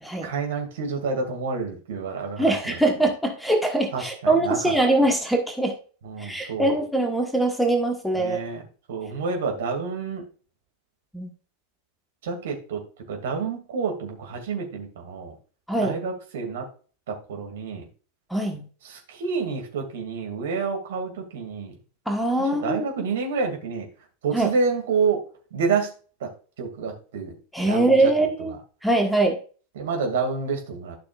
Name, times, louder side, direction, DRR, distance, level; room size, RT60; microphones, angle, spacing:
voice 1, 0.2-2.8 3.9-4.7 6.0-6.8 8.1-8.6 8.9-10.2 12.2-12.8 13.1-15.3 15.8-16.7 17.1-17.8 18.8-21.7 22.4-23.9 24.2-25.2 25.5-25.9 26.2-26.3 26.6-27.4 27.6-28.1 28.4-28.6 29.8-31.0, right 5 dB, 60° right, 3 dB, 2.4 m, -28 dB
voice 2, 2.4-5.7 6.2-8.4 11.1-11.3 15.7-16.0 18.3-18.6 22.1-22.8 24.3-24.5 27.5-28.6 28.8-29.4, right 2 dB, ahead, 4 dB, 1.4 m, -22 dB
12.0 x 6.1 x 2.5 m, 0.39 s
figure-of-eight pair, 90°, 0 cm